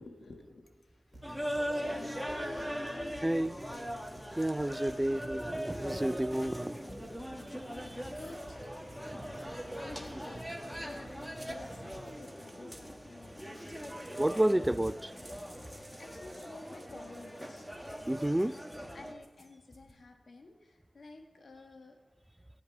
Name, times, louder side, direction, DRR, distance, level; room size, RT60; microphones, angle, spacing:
voice 1, 0.0-1.4 1.7-3.5 7.6-8.7 9.8-14.7 15.5-15.7 16.0-17.7 18.3-18.6 18.9-22.0, left 2 dB, 75° left, 1.4 m, -51 dB
sound 1, 1.1-13.3 13.9-14.0, right 1 dB, 35° right, 2.2 m, -53 dB
sound 2, 1.2-19.1, equal, ahead, 1.6 m, -41 dB
voice 2, 3.2-3.5 4.4-6.8 10.1-10.2 13.9-14.9 18.1-18.5, right 1 dB, 15° right, 0.3 m, -30 dB
sound 3, 3.7-4.5 4.7-5.5 5.7-6.5 6.7-7.5 7.7-8.5 8.7-9.5 9.7-10.5 10.7-11.5 11.7-12.5 12.7-13.5 13.7-13.9 14.2-14.5 14.7-15.5 15.7-15.9 16.2-16.5 16.7-17.5 17.7-18.5 18.7-19.5 19.7-19.9, left 1 dB, 30° left, 2.6 m, -58 dB
15.0 x 5.2 x 9.4 m
cardioid pair, 50°, 0 cm